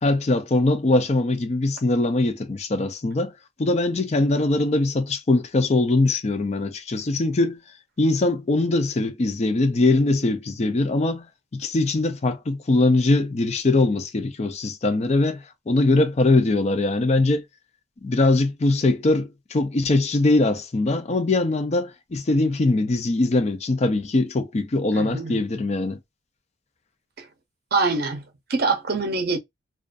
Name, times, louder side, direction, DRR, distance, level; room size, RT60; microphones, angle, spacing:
voice 1, 0.0-3.3 3.6-7.6 8.0-17.4 18.0-26.0, left 2 dB, 35° left, 0.4 m, -22 dB
voice 2, 24.9-25.4 27.2-27.3 27.7-29.4, right 3 dB, 50° right, 0.6 m, -25 dB
2.5 x 2.3 x 2.3 m
head